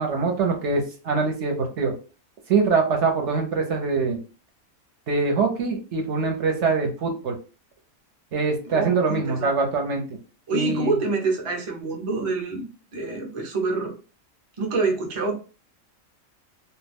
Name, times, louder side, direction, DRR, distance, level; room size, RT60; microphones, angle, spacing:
voice 1, 0.0-1.9 2.5-4.2 5.1-7.4 8.3-10.0 10.5-11.0, right 4 dB, 65° right, 3 dB, 0.9 m, -23 dB
voice 2, 8.7-9.5 10.5-14.0 14.6-15.3, right 3 dB, 35° right, 1 dB, 0.5 m, -27 dB
2.5 x 2.2 x 3.3 m, 0.34 s
omnidirectional pair, 1.4 m